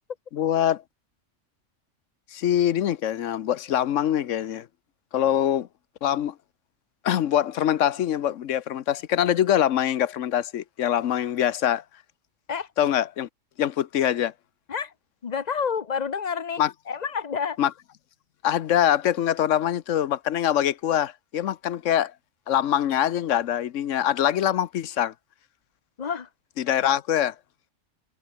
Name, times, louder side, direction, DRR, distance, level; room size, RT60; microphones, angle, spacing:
voice 1, 0.3-0.8 2.3-4.7 5.1-5.7 6.0-6.3 7.0-11.8 12.8-13.3 13.6-14.3 16.6-16.7 17.6-17.7 18.4-22.1 22.5-25.1 26.6-27.3, left 10 dB, 85° left, 1.1 m, -24 dB
voice 2, 15.2-16.6 16.9-17.6 26.0-26.3, left 6 dB, 35° left, 1.0 m, -29 dB
omnidirectional pair, 1.3 m